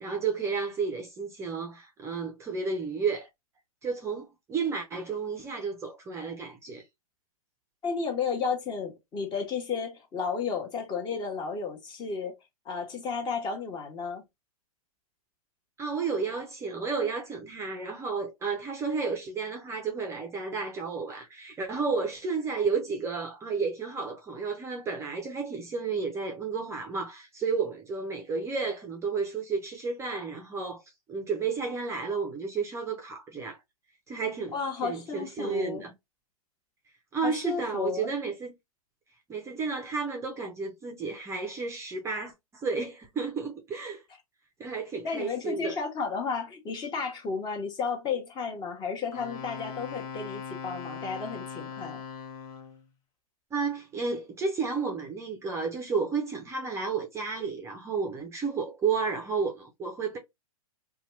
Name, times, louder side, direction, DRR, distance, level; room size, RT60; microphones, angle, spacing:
voice 1, 0.0-3.3 3.8-6.8 15.8-30.8 31.1-33.6 34.1-34.6 34.8-35.9 37.1-38.5 39.3-44.0 44.6-45.8 53.5-60.2, right 5 dB, 15° right, 0.6 m, -32 dB
voice 2, 7.8-12.3 12.7-14.2 34.5-35.8 37.2-38.1 45.0-52.0, left 5 dB, 25° left, 1.0 m, -33 dB
Wind instrument woodwind instrument, 49.1-52.8, left 6 dB, 55° left, 1.2 m, -40 dB
2.7 x 2.3 x 3.0 m
hypercardioid pair, 125°, 19 cm